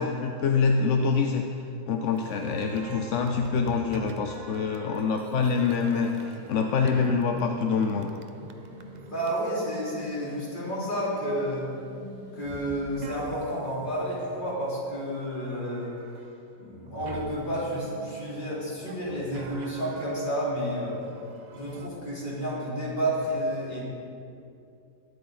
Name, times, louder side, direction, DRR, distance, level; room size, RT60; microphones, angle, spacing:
voice 1, 0.0-1.4 1.9-8.1, left 5 dB, 60° left, 4 dB, 0.9 m, -25 dB
sound 1, 2.1-10.7 11.1-11.7 12.4-14.9 15.2-16.4 16.7-21.9, right 5 dB, 65° right, 0.4 m, -46 dB
sound 2, 6.0-13.3, left 2 dB, 10° left, 2.7 m, -48 dB
voice 2, 9.1-11.7 12.3-15.9 16.6-20.9 21.5-23.8, equal, 30° left, -8 dB, 4.0 m, -30 dB
21.5 x 8.5 x 4.0 m, 2.6 s
omnidirectional pair, 1.7 m